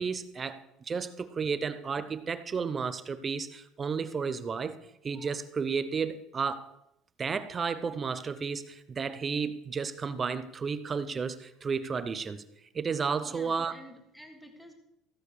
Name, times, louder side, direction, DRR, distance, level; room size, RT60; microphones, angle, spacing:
voice 1, 0.0-4.8 5.0-6.7 7.2-12.4 12.7-13.7, right 5 dB, 20° right, 12 dB, 0.7 m, -32 dB
voice 2, 13.2-14.7, equal, ahead, 4 dB, 1.5 m, -50 dB
15.0 x 6.7 x 6.6 m, 0.81 s
cardioid pair, 160°, 0 cm